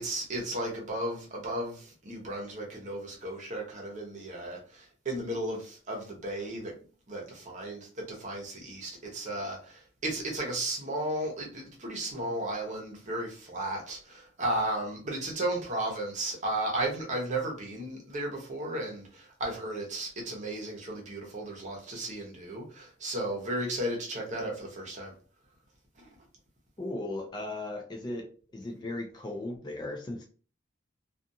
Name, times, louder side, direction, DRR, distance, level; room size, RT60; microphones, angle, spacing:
voice 1, 0.0-6.7 7.1-25.1, right 1 dB, 40° right, 0.9 m, -34 dB
voice 2, 26.8-30.3, left 2 dB, 20° left, 0.3 m, -37 dB
2.5 x 2.4 x 2.6 m
head